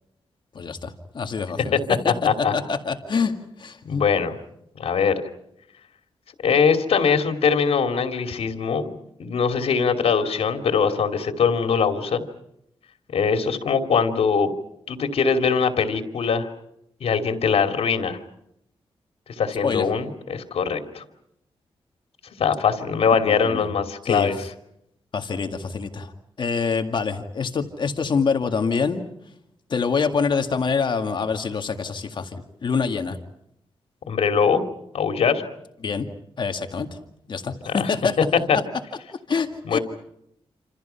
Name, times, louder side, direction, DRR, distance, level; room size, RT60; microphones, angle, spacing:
voice 1, 0.6-1.8 2.0-2.1 2.5-3.3 3.6-4.0 19.6-19.9 23.3-23.6 24.1-24.3 25.1-26.1 26.4-29.0 29.7-33.2 35.8-36.1 36.4-36.9 37.3-38.1 39.3-39.8, left 5 dB, 50° left, 6 dB, 2.0 m, -25 dB
voice 2, 2.1-2.5 3.8-4.4 4.8-5.2 6.4-8.9 9.2-12.2 13.1-14.5 14.9-16.5 17.0-18.2 19.4-21.0 22.4-24.4 34.1-34.6 34.9-35.4 37.7-37.9 38.5-38.6 39.6-39.8, left 6 dB, 90° left, 6 dB, 2.7 m, -22 dB
28.0 x 27.5 x 5.7 m, 0.77 s
wide cardioid pair, 155°, 10 cm